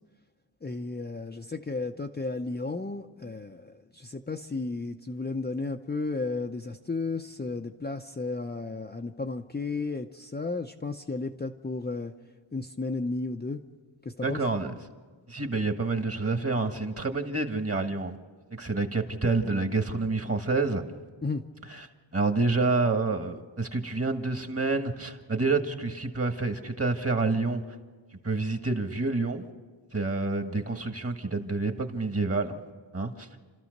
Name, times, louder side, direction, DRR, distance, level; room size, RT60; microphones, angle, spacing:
voice 1, 0.6-12.1 12.5-13.6 14.0-14.4 21.2-21.4, left 3 dB, 20° left, 3 dB, 0.7 m, -33 dB
voice 2, 14.2-14.8 15.3-18.2 18.5-20.8 21.7-21.9 22.1-27.6 28.2-29.4 29.9-32.6 32.9-33.3, right 3 dB, 30° right, 6 dB, 1.7 m, -28 dB
29.5 x 13.0 x 6.6 m, 1.4 s
wide cardioid pair, 80°, 47 cm